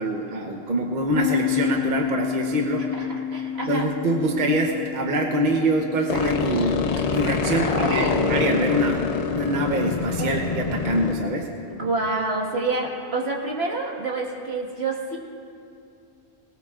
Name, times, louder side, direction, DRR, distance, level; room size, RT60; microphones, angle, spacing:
voice 1, 0.0-2.9 3.7-9.0 9.3-11.5, right 1 dB, 45° right, 1 dB, 1.0 m, -24 dB
sound 1, 1.1-10.6, left 9 dB, 75° left, 1.3 m, -32 dB
voice 2, 2.9-3.9 7.4-8.3 10.2-10.3 11.7-15.2, right 2 dB, 75° right, -2 dB, 1.9 m, -28 dB
sound 2, 6.1-11.1, left 5 dB, 45° left, 0.6 m, -25 dB
19.5 x 18.5 x 2.4 m, 2.6 s
omnidirectional pair, 1.1 m